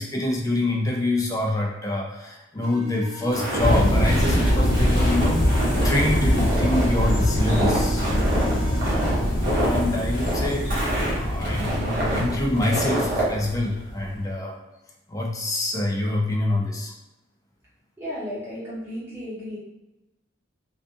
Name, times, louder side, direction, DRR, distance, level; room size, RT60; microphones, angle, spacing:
voice 1, 0.0-8.1 8.5-8.9 9.6-14.6 15.1-16.9, left 1 dB, 15° left, 0 dB, 0.4 m, -26 dB
sound 1, 2.6-9.1, right 1 dB, 90° right, 0.4 m, -38 dB
Walk footsteps, 3.3-13.3, right 1 dB, 45° right, 0.8 m, -27 dB
sound 2, 3.6-14.1, equal, 70° left, 0.8 m, -24 dB
voice 2, 18.0-19.6, equal, 10° right, -10 dB, 1.0 m, -34 dB
2.4 x 2.4 x 2.6 m, 1.0 s
head